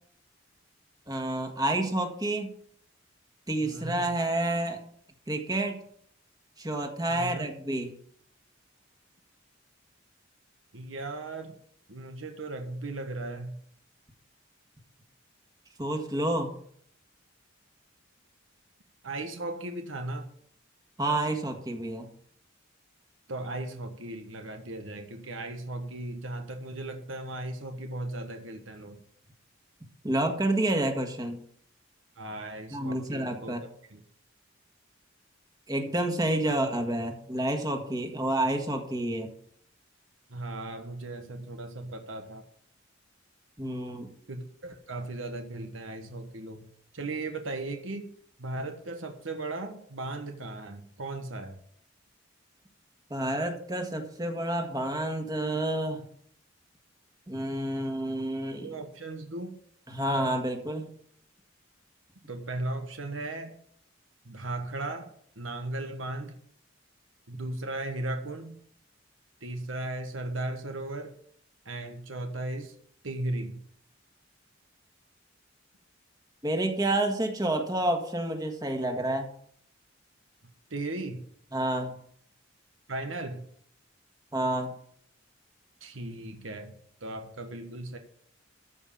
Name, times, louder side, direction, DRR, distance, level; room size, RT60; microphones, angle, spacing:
voice 1, 1.1-2.5 3.5-4.8 5.3-5.8 6.6-7.9 15.8-16.5 21.0-22.1 30.0-31.4 32.7-33.6 35.7-39.3 43.6-44.1 53.1-56.0 57.3-58.7 59.9-60.9 76.4-79.3 81.5-81.9 84.3-84.7, right 1 dB, 20° right, 4 dB, 1.7 m, -29 dB
voice 2, 3.6-4.1 7.1-7.5 10.7-11.6 11.9-13.6 19.0-20.3 23.3-29.0 32.2-34.0 36.5-36.6 40.3-42.4 44.3-46.7 46.9-48.1 48.4-51.6 58.6-59.6 62.3-63.5 64.2-66.4 67.3-68.6 69.4-71.1 71.6-72.7 73.0-73.6 80.7-81.2 82.9-83.4 85.8-88.0, right 2 dB, 80° right, 5 dB, 1.4 m, -37 dB
13.5 x 5.4 x 7.1 m, 0.63 s
head